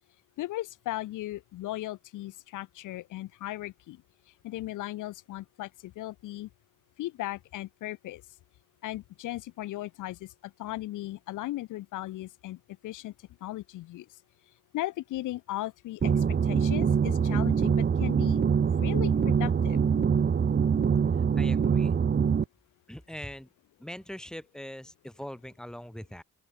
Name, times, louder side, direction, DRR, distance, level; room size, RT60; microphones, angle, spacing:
voice 1, 0.4-4.0 4.4-6.5 7.0-8.2 8.8-13.1 13.4-14.1 14.7-18.4 18.8-19.8, left 16 dB, 90° left, 3.7 m, -37 dB
sound 1, 16.0-22.4, right 6 dB, 35° right, 1.1 m, -24 dB
voice 2, 21.1-22.0 22.9-23.5 23.8-26.2, equal, ahead, 4.6 m, -42 dB
open air
cardioid pair, 90°, 30 cm